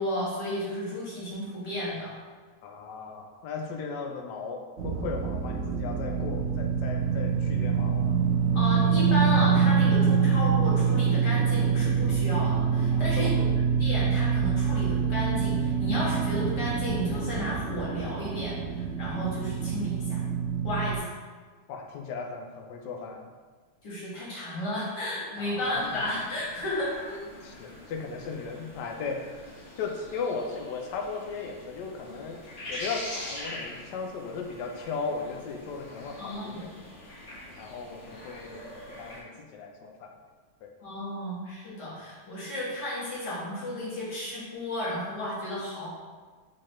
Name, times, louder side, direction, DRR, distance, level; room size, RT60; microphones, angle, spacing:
voice 1, 0.0-2.1 8.5-13.3 13.8-20.2 20.6-21.1 23.8-27.2 36.2-36.6 40.8-45.9, left 1 dB, 55° left, -8 dB, 2.0 m, -33 dB
voice 2, 2.6-8.2 12.9-13.4 21.7-23.3 25.4-26.2 27.4-29.3 29.8-32.4 32.7-36.7 37.6-38.7 39.0-40.2 40.6-40.7, left 4 dB, 75° left, 3 dB, 1.0 m, -37 dB
sound 1, 4.8-21.0, right 6 dB, 85° right, 0.6 m, -25 dB
sound 2, 25.6-39.2, left 1 dB, 90° left, 2.4 m, -44 dB
4.2 x 4.1 x 3.0 m, 1.4 s
omnidirectional pair, 2.3 m